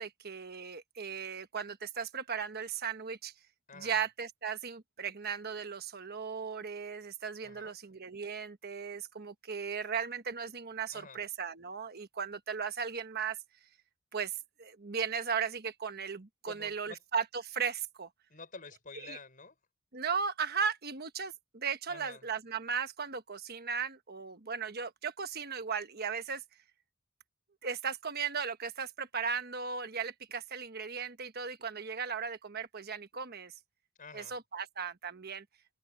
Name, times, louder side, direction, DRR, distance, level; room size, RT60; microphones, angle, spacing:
voice 1, 0.0-3.3 3.7-13.4 14.1-18.1 19.0-19.2 19.9-26.4 27.6-33.5 34.1-35.4, right 6 dB, 50° right, 1.3 m, -36 dB
voice 2, 3.7-4.0 7.4-7.7 10.9-11.2 16.4-17.0 18.3-19.6 21.9-22.3 34.0-34.3, left 4 dB, 40° left, 5.5 m, -49 dB
head